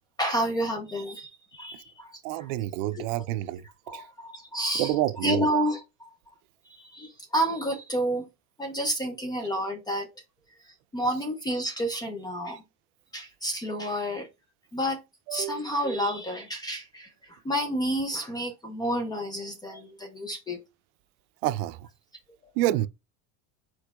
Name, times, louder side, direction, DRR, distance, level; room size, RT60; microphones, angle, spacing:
voice 1, 0.2-2.5 2.9-3.0 3.9-6.1 6.7-8.2 8.6-10.1 10.9-12.6 13.1-14.3 14.7-15.0 15.3-20.6, equal, 10° left, 0.3 m, -30 dB
voice 2, 2.2-3.6 3.9-4.0 4.8-5.5 15.3-15.6 21.4-21.8 22.6-22.9, right 14 dB, 80° right, 0.5 m, -28 dB
4.8 x 4.4 x 2.3 m
cardioid pair, 165°, 41 cm